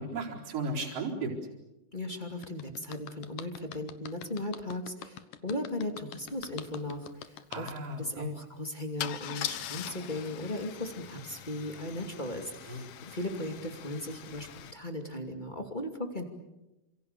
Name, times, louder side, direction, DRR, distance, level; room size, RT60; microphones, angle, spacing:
voice 1, 0.0-1.3 7.5-8.3 12.7-12.8, right 2 dB, 35° right, -2 dB, 5.1 m, -35 dB
voice 2, 1.9-16.3, left 1 dB, 15° left, 5 dB, 1.8 m, -37 dB
sound 1, 2.4-7.7, left 10 dB, 65° left, 2.4 m, -44 dB
Car / Engine starting / Idling, 6.4-6.5 6.7-7.0 9.0-14.7, left 11 dB, 85° left, 1.5 m, -42 dB
28.5 x 26.5 x 6.8 m, 0.96 s
omnidirectional pair, 4.7 m